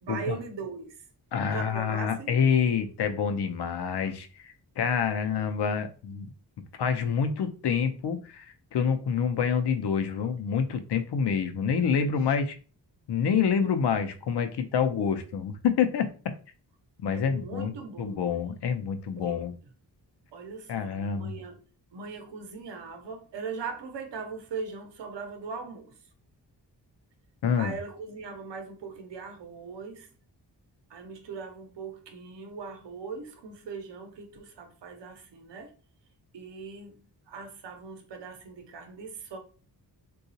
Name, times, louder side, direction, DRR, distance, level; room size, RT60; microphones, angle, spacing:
voice 1, 0.0-1.0 1.5-2.4 5.1-5.4 17.1-18.2 19.2-19.4 20.3-21.6 21.9-26.0 27.6-30.1 30.9-35.7 36.3-39.4, right 5 dB, 85° right, 0.7 m, -40 dB
voice 2, 1.3-6.3 6.8-8.5 8.7-12.5 13.1-16.1 17.0-19.5 20.7-21.4 27.4-27.7, left 7 dB, 70° left, 0.6 m, -27 dB
3.7 x 2.3 x 2.7 m
wide cardioid pair, 140°, 42 cm